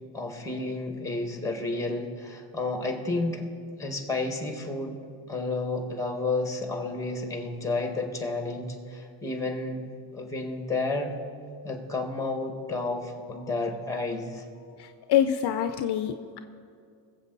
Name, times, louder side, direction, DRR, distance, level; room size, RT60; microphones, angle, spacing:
voice 1, 0.1-3.5 3.8-5.0 5.3-9.8 10.1-11.2 11.6-14.4, left 2 dB, 5° left, 4 dB, 1.8 m, -31 dB
voice 2, 14.8-16.4, left 10 dB, 60° left, 9 dB, 0.6 m, -26 dB
20.5 x 7.7 x 4.1 m, 2.4 s
cardioid pair, 115°, 46 cm